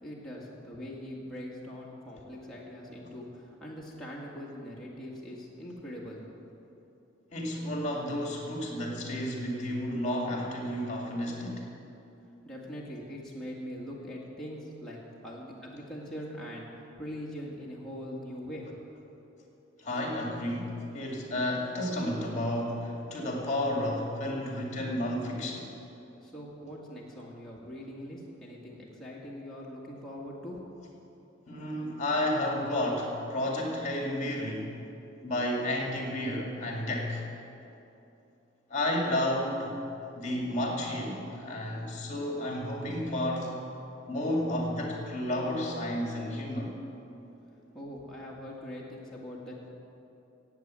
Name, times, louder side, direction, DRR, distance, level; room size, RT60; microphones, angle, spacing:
voice 1, 0.0-6.2 12.4-18.7 26.2-30.6 47.7-49.7, equal, 5° left, -6 dB, 2.0 m, -42 dB
voice 2, 7.3-11.6 19.8-25.7 31.5-34.7 35.2-37.2 38.7-39.8 40.1-43.6 44.1-46.7, left 1 dB, 35° left, 0 dB, 2.3 m, -31 dB
18.0 x 8.3 x 7.6 m, 2.9 s
head